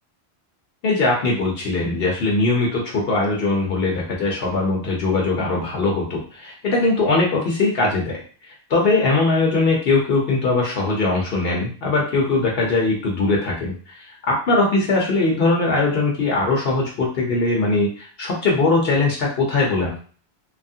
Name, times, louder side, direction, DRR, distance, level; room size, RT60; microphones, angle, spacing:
voice 1, 0.8-8.2 8.7-20.0, left 3 dB, 65° left, -2 dB, 0.9 m, -20 dB
2.9 x 2.4 x 2.6 m, 0.42 s
omnidirectional pair, 1.1 m